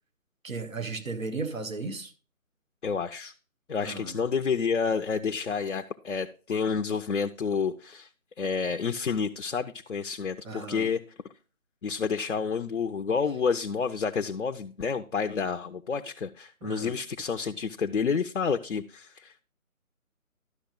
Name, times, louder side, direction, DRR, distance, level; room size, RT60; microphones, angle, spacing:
voice 1, 0.4-2.1 3.8-4.2 10.4-10.9 16.6-17.0, right 3 dB, 70° right, 1.7 m, -35 dB
voice 2, 2.8-3.3 3.7-8.1 8.4-11.0 11.8-19.4, left 5 dB, 60° left, 0.7 m, -29 dB
12.0 x 6.5 x 3.7 m
figure-of-eight pair, 160°, 42 cm